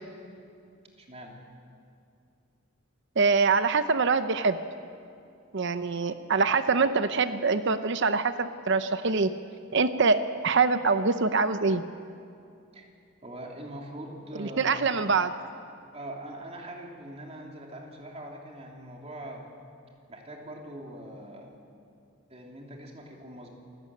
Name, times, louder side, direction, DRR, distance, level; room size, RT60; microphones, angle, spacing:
voice 1, 1.0-1.4 12.7-12.9 13.2-14.8 15.9-19.5 20.1-21.5 22.3-23.5, right 1 dB, 30° right, 0 dB, 3.2 m, -42 dB
voice 2, 3.2-4.6 5.5-9.3 9.7-11.8 14.4-15.3, right 4 dB, 60° right, 11 dB, 0.8 m, -24 dB
27.5 x 15.0 x 8.5 m, 2.5 s
head